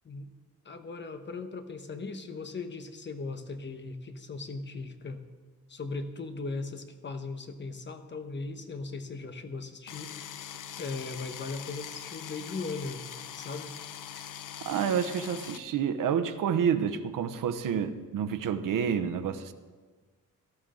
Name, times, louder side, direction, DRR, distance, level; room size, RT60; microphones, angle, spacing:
voice 1, 0.6-5.2 5.7-10.1 10.8-13.0 13.3-13.7, left 3 dB, 35° left, 8 dB, 1.1 m, -38 dB
sound 1, 9.9-15.6, left 9 dB, 70° left, 0.8 m, -42 dB
voice 2, 14.6-19.5, right 7 dB, 85° right, 10 dB, 0.9 m, -29 dB
17.5 x 13.0 x 3.9 m, 1.4 s
wide cardioid pair, 140°, 32 cm